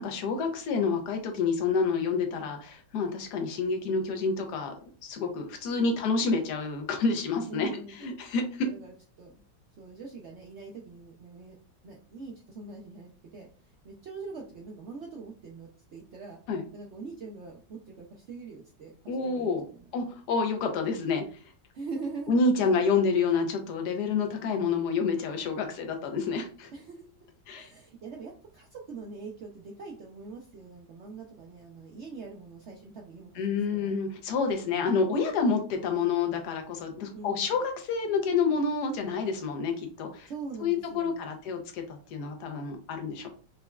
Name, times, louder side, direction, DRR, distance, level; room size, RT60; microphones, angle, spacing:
voice 1, 0.0-4.7 5.0-8.7 16.5-16.7 19.1-19.6 19.9-21.2 22.3-26.7 27.5-27.7 33.4-40.3 40.6-41.8 42.1-43.3, left 4 dB, 75° left, 4 dB, 1.2 m, -28 dB
voice 2, 5.6-6.0 7.5-8.0 8.6-9.4 9.8-11.6 11.8-16.4 16.7-19.9 21.7-22.7 26.7-27.1 27.5-33.9 34.7-35.2 37.1-37.5 40.3-41.4, right 4 dB, 80° right, 0 dB, 0.6 m, -43 dB
5.0 x 2.3 x 2.2 m, 0.40 s
omnidirectional pair, 1.8 m